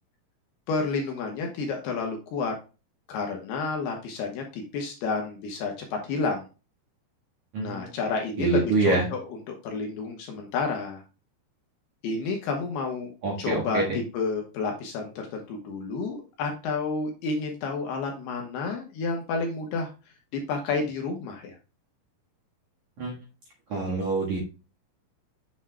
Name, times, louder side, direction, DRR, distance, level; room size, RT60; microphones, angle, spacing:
voice 1, 0.7-2.5 3.1-6.5 7.6-9.2 9.6-11.0 12.0-13.1 13.4-19.9 20.5-21.6, left 4 dB, 75° left, 2 dB, 2.6 m, -30 dB
voice 2, 7.5-7.8 8.4-9.1 13.2-14.0 23.0-23.1 23.7-24.4, right 3 dB, 60° right, -3 dB, 2.1 m, -26 dB
7.8 x 7.4 x 2.2 m, 0.32 s
omnidirectional pair, 5.5 m